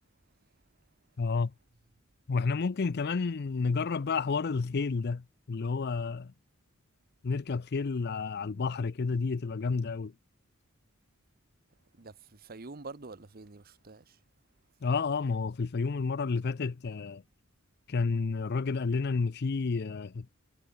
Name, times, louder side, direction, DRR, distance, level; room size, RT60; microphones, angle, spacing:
voice 1, 1.2-1.5 2.3-6.3 7.2-10.1 14.8-17.2 17.9-20.3, left 4 dB, 50° left, 0.5 m, -30 dB
voice 2, 12.0-14.2, right 3 dB, 45° right, 1.0 m, -46 dB
head